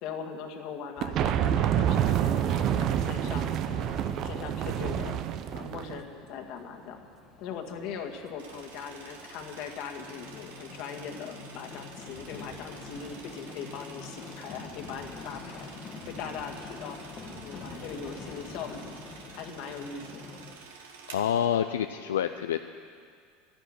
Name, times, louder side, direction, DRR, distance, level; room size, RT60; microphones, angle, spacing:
voice 1, 0.0-3.9 4.2-5.2 5.5-7.0 7.4-15.7 16.1-17.0 17.4-18.9 19.3-20.3, left 6 dB, 60° left, 3 dB, 1.8 m, -40 dB
sound 1, 1.0-6.0, right 10 dB, 50° right, 0.6 m, -28 dB
sound 2, 1.4-20.6, left 4 dB, 35° left, 1.4 m, -46 dB
sound 3, 8.4-21.6, right 5 dB, 80° right, 1.7 m, -50 dB
voice 2, 21.1-22.6, left 9 dB, 85° left, 8 dB, 0.4 m, -27 dB
12.0 x 10.5 x 9.9 m, 2.1 s
hypercardioid pair, 85°, 0 cm